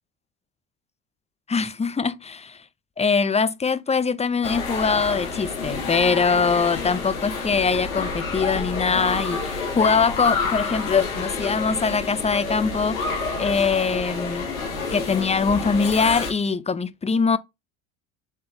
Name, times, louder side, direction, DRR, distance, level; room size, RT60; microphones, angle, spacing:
voice 1, 1.5-2.6 3.0-14.5 14.9-17.4, left 5 dB, 15° left, 0.8 m, -23 dB
sound 1, 4.4-16.3, left 4 dB, 80° left, 2.0 m, -29 dB
7.4 x 4.0 x 4.5 m
hypercardioid pair, 65°, 41 cm